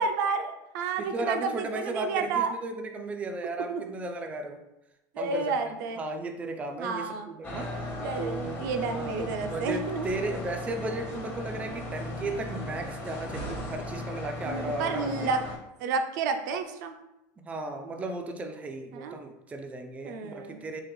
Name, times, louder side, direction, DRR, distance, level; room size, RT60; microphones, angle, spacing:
voice 1, 0.0-2.5 3.7-3.8 5.1-6.0 6.8-7.3 8.0-10.1 14.5-15.4 15.8-16.9 18.9-19.2 20.0-20.6, right 4 dB, 80° right, 6 dB, 0.5 m, -30 dB
voice 2, 1.0-4.6 5.2-7.9 8.2-15.3 17.4-20.8, right 2 dB, 15° right, 4 dB, 0.3 m, -35 dB
sound 1, 7.4-15.6, left 1 dB, 20° left, 0.9 m, -37 dB
3.7 x 2.9 x 3.1 m, 0.90 s
supercardioid pair, 130°, 10 cm